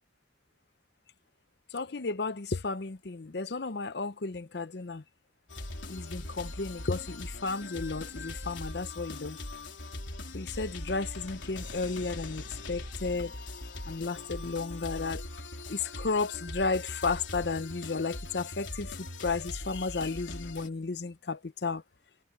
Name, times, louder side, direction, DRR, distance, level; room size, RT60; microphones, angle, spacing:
voice 1, 1.7-5.0 5.9-9.4 10.3-13.4 13.9-15.2 15.7-21.8, left 4 dB, 60° left, 0.7 m, -33 dB
sound 1, 5.5-20.7, left 2 dB, 85° left, 3.9 m, -41 dB
head